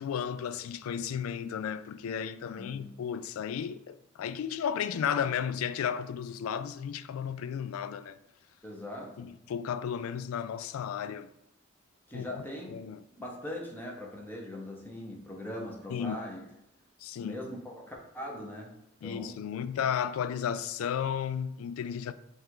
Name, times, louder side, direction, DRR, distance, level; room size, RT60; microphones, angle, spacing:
voice 1, 0.0-8.2 9.2-11.3 12.1-13.0 15.9-16.2 17.0-17.4 19.0-22.1, left 8 dB, 85° left, 0.3 m, -34 dB
voice 2, 2.6-2.9 8.6-9.3 12.1-12.8 13.1-16.4 17.2-18.7 19.0-19.4, left 1 dB, 10° left, 0.7 m, -41 dB
5.4 x 2.4 x 3.7 m
head